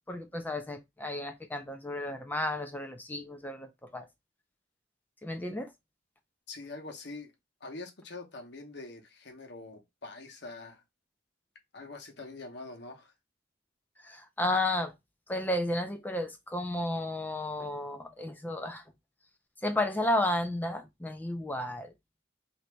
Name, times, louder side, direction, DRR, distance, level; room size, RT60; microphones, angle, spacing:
voice 1, 0.1-4.1 5.2-5.7 14.0-14.9 15.3-18.8 19.6-21.9, left 1 dB, 10° left, 0.4 m, -32 dB
voice 2, 6.5-7.3 7.6-10.8 11.7-13.1, left 3 dB, 65° left, 1.0 m, -44 dB
2.9 x 2.7 x 3.3 m
head